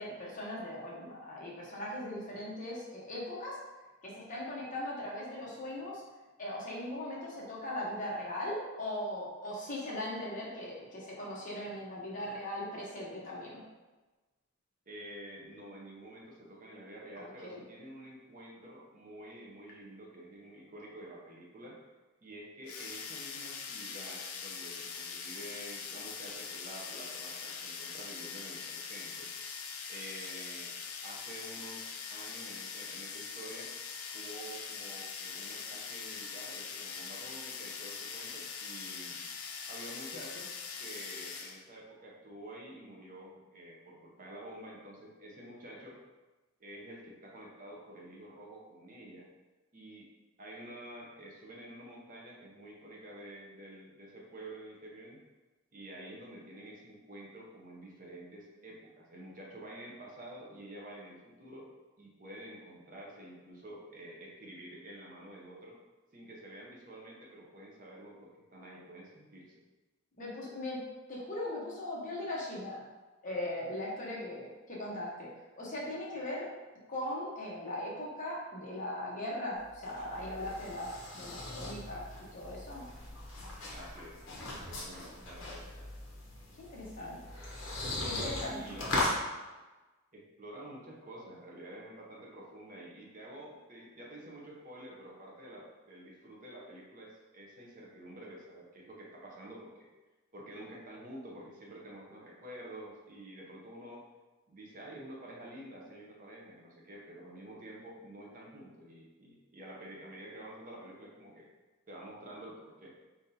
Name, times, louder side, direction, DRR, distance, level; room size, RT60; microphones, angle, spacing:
voice 1, 0.0-3.6 4.0-6.0 6.4-13.6 17.1-17.6 70.2-70.8 71.1-72.8 73.2-75.3 75.6-76.5 76.9-82.0 82.3-82.8 86.6-87.2 88.0-88.6, left 1 dB, 35° left, -5 dB, 1.1 m, -39 dB
voice 2, 14.9-21.8 22.2-29.3 29.9-30.7 31.0-33.7 34.1-39.2 39.7-40.5 40.8-46.0 46.6-49.3 49.7-50.1 50.4-55.2 55.7-61.7 62.0-65.8 66.1-69.6 83.7-85.7 87.0-87.1 88.4-89.2 90.1-99.9 100.3-104.0 104.5-111.5 111.9-112.9, right 1 dB, 40° right, -3 dB, 0.8 m, -49 dB
sound 1, 22.7-41.6, left 6 dB, 90° left, 0.5 m, -42 dB
sound 2, 79.6-89.2, left 2 dB, 60° left, 1.1 m, -39 dB
4.4 x 3.7 x 2.8 m, 1.2 s
head